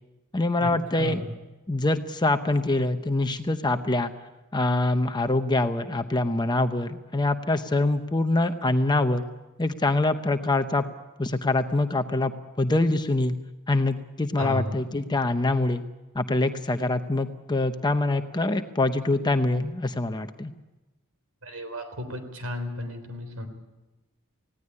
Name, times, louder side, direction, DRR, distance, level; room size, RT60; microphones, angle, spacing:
voice 1, 0.3-1.2 1.7-4.1 4.5-9.2 9.6-10.8 11.2-12.3 12.6-13.4 13.7-15.8 16.1-20.5, left 2 dB, 20° left, 8 dB, 0.8 m, -24 dB
voice 2, 1.0-1.3 14.4-14.7 21.4-23.5, left 1 dB, 85° right, 7 dB, 3.8 m, -33 dB
19.5 x 17.0 x 9.9 m, 1.1 s
head